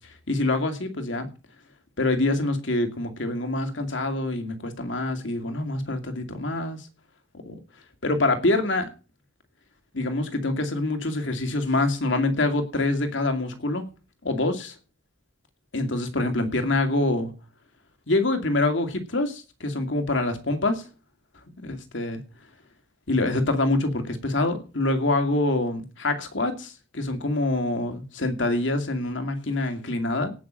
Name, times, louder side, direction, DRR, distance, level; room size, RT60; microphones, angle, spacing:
voice 1, 0.3-1.3 2.0-6.9 7.4-7.6 8.0-8.9 9.9-13.8 14.2-14.7 15.7-17.3 18.1-20.8 21.6-22.2 23.1-30.3, left 2 dB, 75° left, 6 dB, 2.5 m, -25 dB
18.0 x 6.2 x 6.4 m, 0.34 s
head